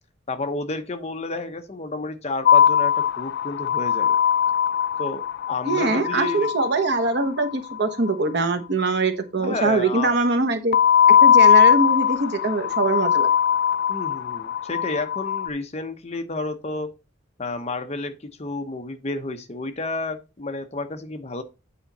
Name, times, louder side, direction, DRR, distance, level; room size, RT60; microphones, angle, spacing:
voice 1, 0.3-4.2 5.0-6.5 9.4-10.2 13.9-16.9 17.4-18.1 18.4-21.4, left 3 dB, 35° left, 0.9 m, -31 dB
sound 1, 2.5-7.8 10.7-15.5, left 8 dB, 55° left, 0.3 m, -19 dB
voice 2, 5.7-10.8 11.1-13.3, right 3 dB, 60° right, 1.2 m, -23 dB
8.7 x 4.9 x 4.1 m
head